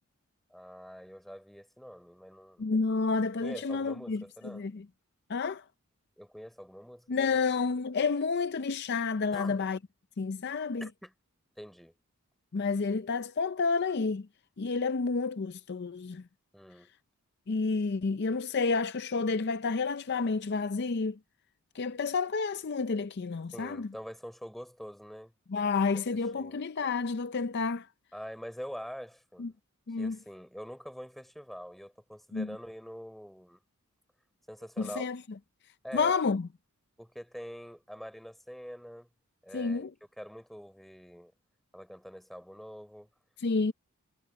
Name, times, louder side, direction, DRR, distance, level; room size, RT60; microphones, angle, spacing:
voice 1, 0.5-2.7 3.4-4.6 6.2-7.4 9.3-9.6 10.8-11.1 11.6-11.9 16.5-16.9 23.5-25.3 26.3-26.6 28.1-29.5 30.0-33.6 34.5-35.1 35.8-36.1 37.0-39.1 39.4-39.8 40.2-41.3 41.7-43.1, equal, ahead, 3.5 m, -45 dB
voice 2, 2.6-4.8 5.3-5.6 7.1-9.8 10.2-10.9 12.5-14.3 14.6-16.2 17.5-21.2 21.7-23.9 25.5-27.9 29.4-29.5 29.9-30.2 32.3-32.6 34.8-35.2 35.9-36.5 39.5-39.9 43.4-43.7, left 4 dB, 50° left, 0.5 m, -30 dB
head